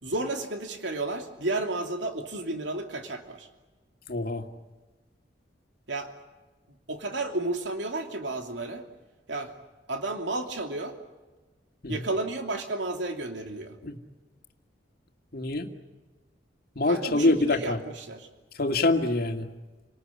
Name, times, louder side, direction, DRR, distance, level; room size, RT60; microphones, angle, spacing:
voice 1, 0.0-3.5 5.9-6.1 6.7-8.8 9.3-9.5 9.9-11.0 11.9-13.8 16.9-18.3, right 2 dB, 75° right, 4 dB, 2.9 m, -32 dB
voice 2, 4.1-4.5 11.8-12.0 13.8-14.0 15.3-15.7 16.8-17.8 18.5-19.5, left 2 dB, 55° left, 5 dB, 2.2 m, -25 dB
29.5 x 20.0 x 8.6 m, 1.2 s
head